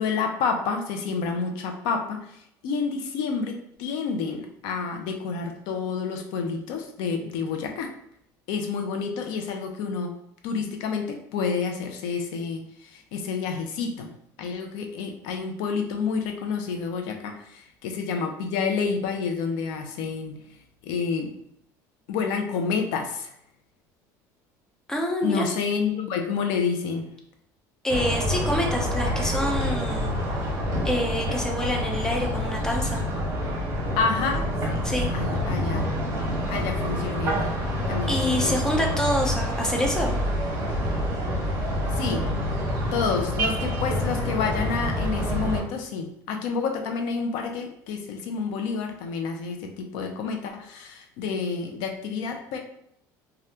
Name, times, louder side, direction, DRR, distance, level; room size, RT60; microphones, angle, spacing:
voice 1, 0.0-2.3 2.6-7.9 8.5-10.1 10.4-14.1 14.4-20.4 20.8-21.3 22.1-23.3 25.2-27.1 34.0-34.9 35.1-36.0 36.5-37.6 37.9-38.6 42.0-42.2 42.9-52.6, left 5 dB, 75° left, 4 dB, 0.6 m, -29 dB
voice 2, 24.9-25.5 27.8-30.1 30.8-33.0 34.8-35.1 38.1-40.2, left 1 dB, 5° left, 0 dB, 0.5 m, -26 dB
sound 1, 27.9-45.6, equal, 40° right, 1.4 m, -27 dB
3.3 x 2.4 x 2.8 m, 0.73 s
cardioid pair, 155°, 8 cm